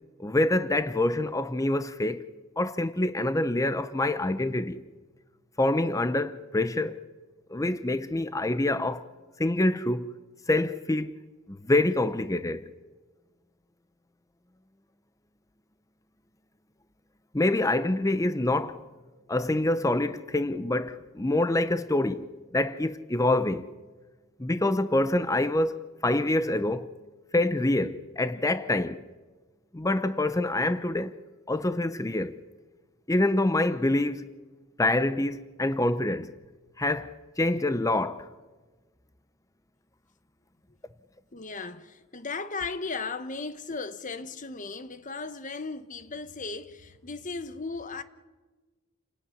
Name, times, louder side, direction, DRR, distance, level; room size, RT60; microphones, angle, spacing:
voice 1, 0.2-2.3 2.6-4.8 5.6-7.0 7.5-9.0 9.4-10.1 10.5-11.1 11.5-12.6 17.3-18.8 19.3-23.7 24.4-26.9 27.3-29.0 29.7-31.1 31.5-32.3 33.1-34.2 34.8-36.3 36.8-38.3, left 2 dB, 15° left, 0.7 m, -26 dB
voice 2, 41.3-48.0, left 4 dB, 35° left, 1.2 m, -36 dB
29.0 x 17.0 x 9.9 m
head